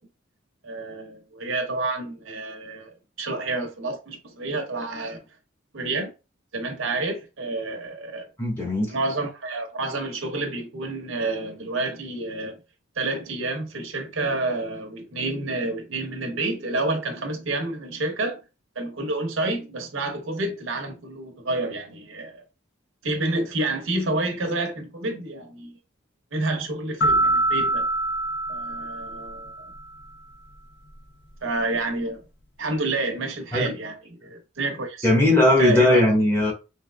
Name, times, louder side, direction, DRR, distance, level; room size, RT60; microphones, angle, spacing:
voice 1, 0.6-5.2 5.7-6.1 6.5-8.3 8.8-12.6 13.0-18.4 18.8-22.4 23.0-25.7 26.3-27.9 28.5-29.7 31.4-32.2 32.6-35.1 35.6-36.0, right 2 dB, 80° right, 0.8 m, -29 dB
voice 2, 8.4-8.9 33.5-33.7 35.0-36.5, left 1 dB, 10° left, 1.2 m, -18 dB
sound 1, 27.0-29.8, right 1 dB, 55° left, 0.6 m, -24 dB
3.5 x 2.8 x 2.2 m
head